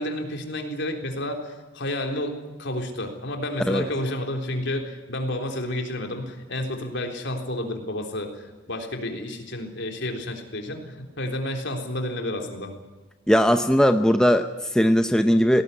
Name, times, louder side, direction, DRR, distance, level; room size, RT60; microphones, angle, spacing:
voice 1, 0.0-12.7, left 1 dB, 55° left, 3 dB, 3.8 m, -30 dB
voice 2, 13.3-15.6, equal, 5° left, 7 dB, 0.7 m, -19 dB
19.0 x 18.5 x 9.8 m, 1.2 s
head